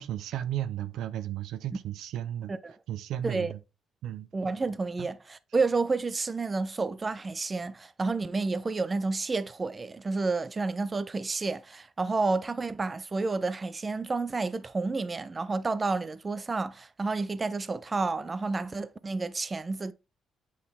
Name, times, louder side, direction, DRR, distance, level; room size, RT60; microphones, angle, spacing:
voice 1, 0.0-2.5 2.9-3.6 4.0-4.3 5.0-5.1, right 11 dB, 85° right, 0.6 m, -34 dB
voice 2, 4.3-19.9, right 3 dB, 30° right, 0.5 m, -30 dB
8.6 x 4.0 x 3.5 m
cardioid pair, 90°, 0 cm